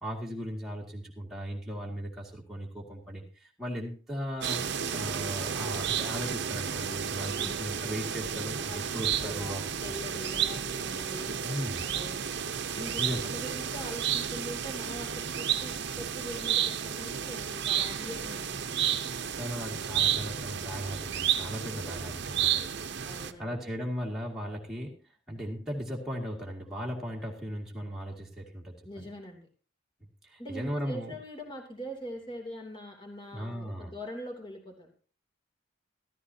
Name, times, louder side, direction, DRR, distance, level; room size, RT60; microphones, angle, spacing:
voice 1, 0.0-10.0 11.4-11.9 13.0-13.3 19.1-22.7 23.4-25.0 25.3-29.1 30.2-31.1 33.3-33.9, equal, ahead, -4 dB, 2.1 m, -37 dB
sound 1, 4.4-23.3, right 8 dB, 60° right, 0.8 m, -32 dB
voice 2, 7.2-7.6 8.7-9.5 9.8-12.2 12.7-18.7 23.0-23.5 28.8-29.5 30.4-34.9, equal, 25° left, 2 dB, 2.9 m, -43 dB
14.5 x 14.0 x 2.8 m, 0.38 s
head